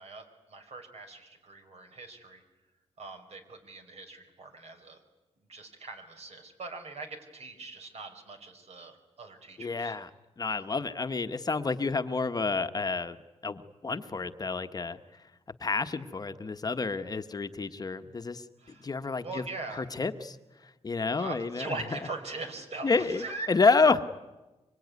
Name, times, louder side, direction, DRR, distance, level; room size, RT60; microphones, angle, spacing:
voice 1, 0.0-2.4 3.0-5.0 5.5-10.0 10.6-10.7 18.6-18.9 19.2-19.8 21.2-23.8, right 3 dB, 65° right, 6 dB, 4.7 m, -41 dB
voice 2, 9.6-10.1 10.4-13.2 13.4-15.0 15.6-18.4 18.8-19.4 19.7-20.4 20.6-21.8 22.8-24.1, left 4 dB, 35° left, 9 dB, 1.1 m, -29 dB
25.0 x 24.5 x 9.5 m, 1.1 s
wide cardioid pair, 110°, 11 cm